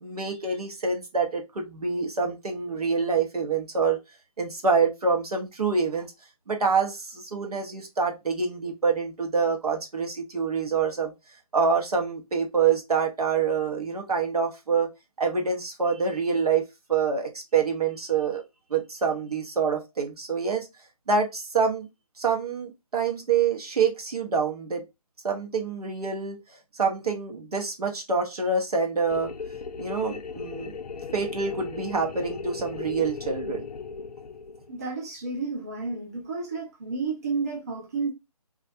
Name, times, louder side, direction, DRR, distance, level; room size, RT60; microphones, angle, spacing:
voice 1, 0.0-4.0 4.4-6.1 6.5-11.1 11.5-14.9 15.2-16.6 16.9-18.4 18.7-20.7 21.1-21.9 22.2-24.8 25.2-26.4 26.7-29.3 29.8-30.8 31.1-33.7, right 5 dB, 75° right, 0.9 m, -26 dB
sound 1, 29.1-34.8, left 5 dB, 80° left, 0.4 m, -37 dB
voice 2, 34.7-38.1, right 4 dB, 25° right, 0.4 m, -31 dB
2.4 x 2.1 x 2.6 m
figure-of-eight pair, 160°, 20 cm